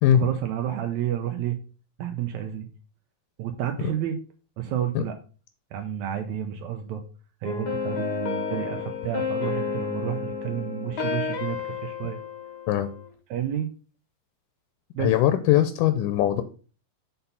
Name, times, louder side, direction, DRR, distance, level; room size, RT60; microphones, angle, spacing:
voice 1, 0.1-1.6 2.0-2.7 3.4-4.2 4.6-5.1 5.7-7.0 7.4-12.2 13.3-13.7 14.9-15.1, right 10 dB, 85° right, 6 dB, 1.7 m, -30 dB
sound 1, 7.4-13.1, left 5 dB, 60° left, 1.0 m, -31 dB
voice 2, 15.0-16.4, left 12 dB, 80° left, 10 dB, 2.0 m, -21 dB
6.8 x 4.3 x 5.4 m, 0.37 s
omnidirectional pair, 4.1 m